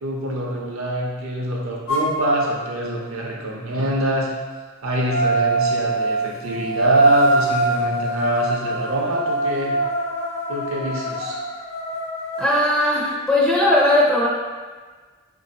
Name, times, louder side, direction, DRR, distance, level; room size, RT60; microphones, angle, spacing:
voice 1, 0.0-4.3 4.8-9.8 10.5-11.4, right 1 dB, 75° right, -2 dB, 0.7 m, -25 dB
sound 1, 1.9-2.1 5.1-12.5, right 2 dB, 85° left, 0.7 m, -23 dB
voice 2, 12.4-14.3, left 1 dB, 5° left, -5 dB, 0.4 m, -18 dB
4.0 x 2.7 x 2.8 m, 1.4 s
head